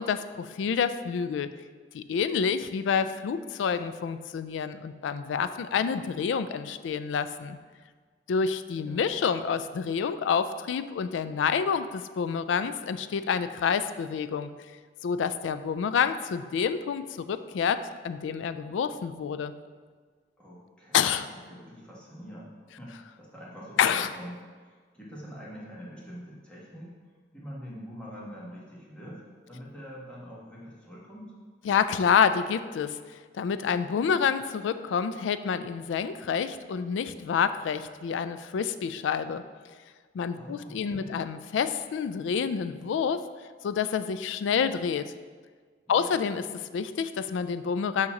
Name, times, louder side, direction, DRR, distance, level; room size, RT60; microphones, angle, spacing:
voice 1, 0.0-1.5 1.9-7.6 8.3-14.5 15.0-19.5 20.9-21.3 23.8-24.1 31.6-33.0 33.3-39.4 40.1-43.2 43.6-45.1 45.9-48.1, left 6 dB, 90° left, 12 dB, 0.3 m, -28 dB
voice 2, 20.4-26.9 27.3-29.2 29.5-31.3 40.3-41.2 45.9-46.1, equal, 5° left, -6 dB, 1.3 m, -45 dB
6.3 x 2.9 x 5.8 m, 1.5 s
head